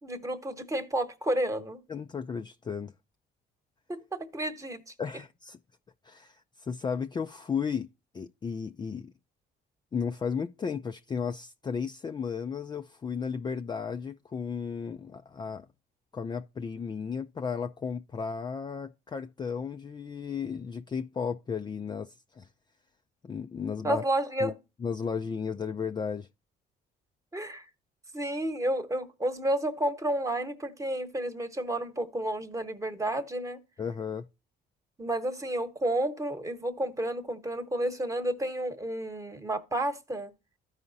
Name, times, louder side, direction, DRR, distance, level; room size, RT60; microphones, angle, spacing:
voice 1, 0.0-1.8 3.9-4.9 23.8-24.6 27.3-27.7 28.1-33.6 35.0-40.3, right 1 dB, 15° right, 1.1 m, -31 dB
voice 2, 1.9-2.9 5.0-5.6 6.0-7.9 8.1-9.1 9.9-15.7 16.1-22.5 23.2-24.0 24.4-24.5 24.8-26.3 33.8-34.3, left 6 dB, 25° left, 0.4 m, -34 dB
14.0 x 4.8 x 2.7 m
cardioid pair, 100°, 20 cm